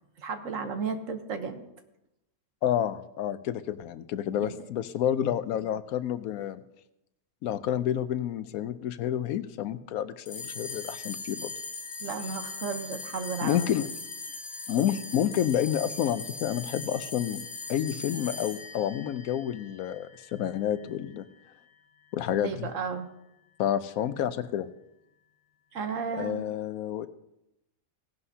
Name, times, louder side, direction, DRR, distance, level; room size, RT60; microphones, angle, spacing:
voice 1, 0.2-1.6 4.3-4.5 12.0-13.7 22.4-23.1 25.7-26.4, right 5 dB, 65° right, 7 dB, 1.3 m, -34 dB
voice 2, 2.6-6.6 7.4-11.5 13.4-13.9 14.7-17.4 17.7-21.2 22.1-22.7 23.6-24.7 26.2-27.1, left 10 dB, 80° left, 13 dB, 1.1 m, -29 dB
sound 1, 10.3-20.9, left 3 dB, 55° left, 1.8 m, -40 dB
17.5 x 11.0 x 2.8 m, 0.88 s
omnidirectional pair, 1.5 m